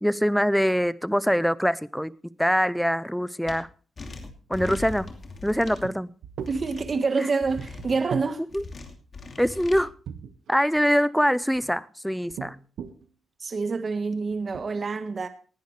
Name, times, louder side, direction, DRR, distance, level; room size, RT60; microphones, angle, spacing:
voice 1, 0.0-2.1 2.4-3.7 4.5-5.1 5.4-6.1 7.2-7.3 8.5-8.6 9.4-9.9 10.5-12.6, equal, ahead, 0.6 m, -23 dB
sound 1, 3.5-3.6 4.0-5.9 6.4-6.9 7.4-8.0 8.5-9.8, left 3 dB, 40° left, 2.7 m, -39 dB
sound 2, 5.8-5.9 6.2-6.5 7.6-8.3 10.1-10.8 11.4-11.7 12.3-13.1 13.8-14.0 14.3-14.6, right 8 dB, 85° right, 1.4 m, -37 dB
voice 2, 6.5-8.4 13.4-15.3, right 4 dB, 35° right, 1.4 m, -27 dB
19.0 x 11.0 x 3.2 m
cardioid pair, 125°, 0 cm